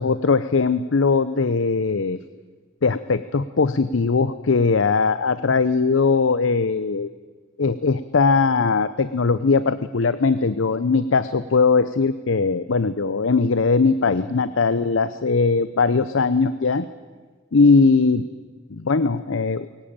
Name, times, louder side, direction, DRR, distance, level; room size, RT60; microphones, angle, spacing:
voice 1, 0.0-2.2 2.8-7.1 7.6-16.9 17.5-18.2 18.7-19.7, left 4 dB, 80° left, 14 dB, 0.7 m, -20 dB
22.5 x 18.0 x 8.9 m, 1.4 s
head